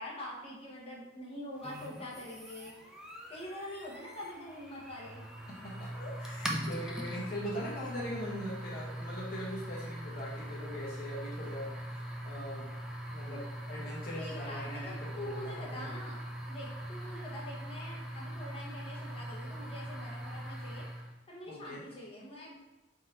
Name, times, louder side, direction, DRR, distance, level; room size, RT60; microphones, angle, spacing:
voice 1, 0.0-2.8 3.3-5.3 6.7-6.8 10.5-10.9 13.2-13.4 14.2-20.9 21.3-22.6, left 1 dB, 30° left, -4 dB, 1.0 m, -45 dB
sound 1, 1.6-21.2, right 1 dB, 5° right, 0.4 m, -41 dB
voice 2, 5.5-12.7 13.1-16.0 21.5-21.8, equal, 55° left, -5 dB, 0.8 m, -41 dB
3.8 x 2.6 x 4.2 m, 1.1 s
head